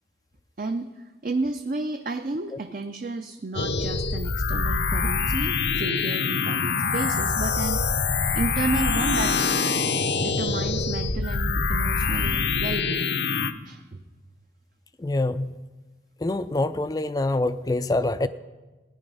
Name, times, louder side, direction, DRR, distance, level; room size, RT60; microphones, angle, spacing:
voice 1, 0.6-8.0 8.3-9.4 10.2-13.1 13.6-14.0, right 3 dB, 45° right, 6 dB, 0.5 m, -31 dB
sound 1, 3.5-13.5, left 4 dB, 70° left, 0.7 m, -25 dB
voice 2, 15.0-15.6 16.2-18.3, left 2 dB, 20° left, 13 dB, 0.4 m, -25 dB
16.5 x 10.0 x 5.5 m, 1.2 s
head